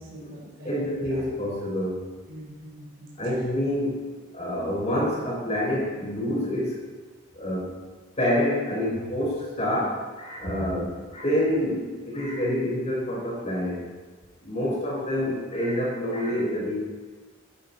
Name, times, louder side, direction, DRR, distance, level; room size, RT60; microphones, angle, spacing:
voice 1, 0.0-1.3 2.3-3.1 10.4-10.8, equal, 45° right, -5 dB, 4.3 m, -40 dB
voice 2, 0.6-2.1 3.2-4.0 4.3-6.8 7.3-7.8 8.2-13.9 14.4-16.8, left 1 dB, 30° left, -4 dB, 5.4 m, -27 dB
16.5 x 11.5 x 4.4 m, 1.4 s
head